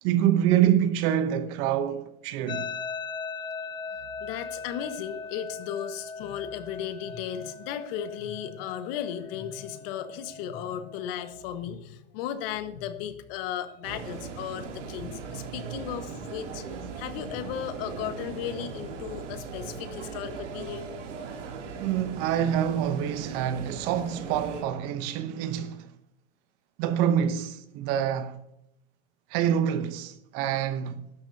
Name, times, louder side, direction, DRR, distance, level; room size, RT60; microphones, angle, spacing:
voice 1, 0.0-2.7 21.8-25.9 26.8-28.4 29.3-31.0, right 10 dB, 45° right, 0.9 m, -26 dB
sound 1, 2.5-11.5, left 5 dB, 15° left, 0.3 m, -40 dB
voice 2, 4.2-16.6 17.0-20.9, left 9 dB, 55° left, 1.6 m, -35 dB
sound 2, 13.8-24.6, right 5 dB, 90° right, 3.2 m, -39 dB
15.5 x 12.5 x 2.9 m
supercardioid pair, 140°, 35 cm